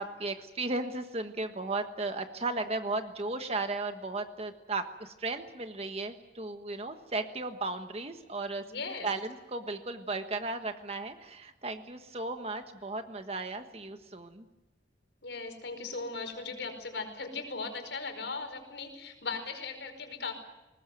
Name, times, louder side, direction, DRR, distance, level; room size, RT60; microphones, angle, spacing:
voice 1, 0.0-8.6 9.0-14.5, right 3 dB, 35° right, 7 dB, 1.4 m, -35 dB
voice 2, 8.6-9.1 15.2-20.3, left 4 dB, 80° left, 7 dB, 5.0 m, -38 dB
21.5 x 19.5 x 9.2 m, 1.1 s
head